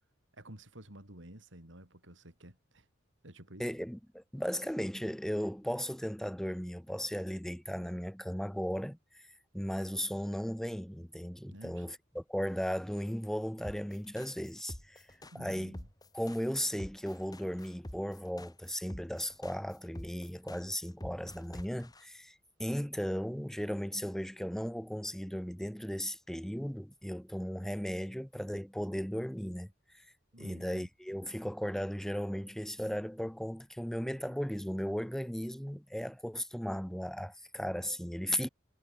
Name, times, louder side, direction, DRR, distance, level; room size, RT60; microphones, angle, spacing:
voice 1, 0.3-2.9 3.2-3.7 11.5-11.9 15.3-15.9 30.3-30.9, right 1 dB, 70° right, 5.8 m, -51 dB
voice 2, 3.6-9.0 9.5-15.0 15.3-15.8 16.1-29.7 30.4-38.5, equal, ahead, 1.1 m, -36 dB
sound 1, 13.6-22.0, left 1 dB, 20° left, 2.2 m, -46 dB
head